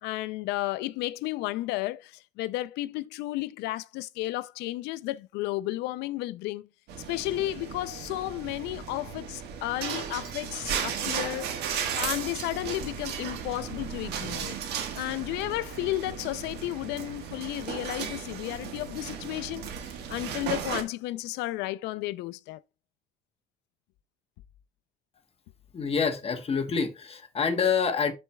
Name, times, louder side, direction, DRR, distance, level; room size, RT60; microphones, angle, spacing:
voice 1, 0.0-6.7 7.1-14.6 14.9-19.7 20.1-22.6, left 17 dB, 90° left, 0.4 m, -33 dB
sound 1, 6.9-20.8, right 7 dB, 80° right, 1.3 m, -35 dB
voice 2, 25.7-28.1, left 5 dB, 35° left, 1.0 m, -27 dB
11.5 x 4.2 x 2.2 m
cardioid pair, 110°, 17 cm